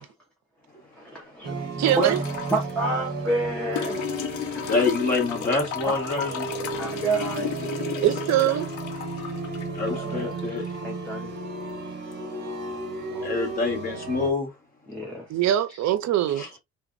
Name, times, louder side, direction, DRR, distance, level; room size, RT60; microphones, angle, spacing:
voice 1, 1.0-2.2 2.5-4.2 5.6-7.5 9.9-10.4 10.8-11.3 12.7-13.4 14.9-15.4 15.7-15.8, right 2 dB, 5° left, 0.5 m, -30 dB
sound 1, 1.4-14.3, right 3 dB, 35° right, 1.0 m, -33 dB
voice 2, 1.8-2.2 8.0-8.7 15.3-16.5, right 12 dB, 65° right, 0.5 m, -22 dB
sound 2, 1.9-2.7 3.8-10.8 12.1-12.2, left 9 dB, 75° left, 0.6 m, -34 dB
voice 3, 4.7-6.5 9.7-10.7 13.2-14.5 16.4-16.6, left 4 dB, 30° left, 1.2 m, -26 dB
3.3 x 2.1 x 2.4 m
cardioid pair, 175°, 30 cm